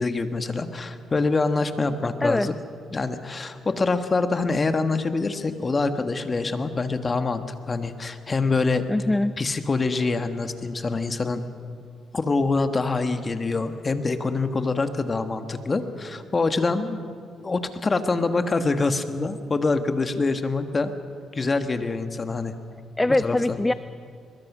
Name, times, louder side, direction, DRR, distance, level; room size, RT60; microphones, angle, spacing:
voice 1, 0.0-2.5 2.9-8.8 9.4-11.4 12.1-17.0 17.4-20.9 21.3-22.5 23.2-23.6, left 3 dB, 30° left, 8 dB, 1.5 m, -25 dB
voice 2, 8.9-9.3 23.0-23.7, left 2 dB, 15° left, 14 dB, 0.5 m, -22 dB
23.0 x 21.5 x 6.2 m, 2.3 s
cardioid pair, 90°, 0 cm